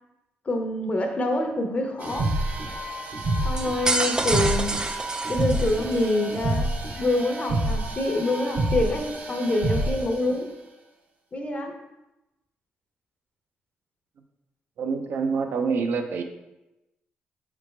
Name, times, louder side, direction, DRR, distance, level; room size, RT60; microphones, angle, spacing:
voice 1, 0.5-2.4 3.4-4.7 5.3-6.7 7.0-10.5 11.3-11.8, left 1 dB, 35° left, 4 dB, 0.7 m, -26 dB
sound 1, 2.0-10.2, right 1 dB, 55° right, 0.9 m, -28 dB
sound 2, 3.6-6.1, right 2 dB, 20° right, 0.4 m, -28 dB
voice 2, 14.8-16.2, right 5 dB, 70° right, 5 dB, 0.5 m, -26 dB
4.8 x 3.3 x 3.2 m, 0.97 s
cardioid pair, 85°, 4 cm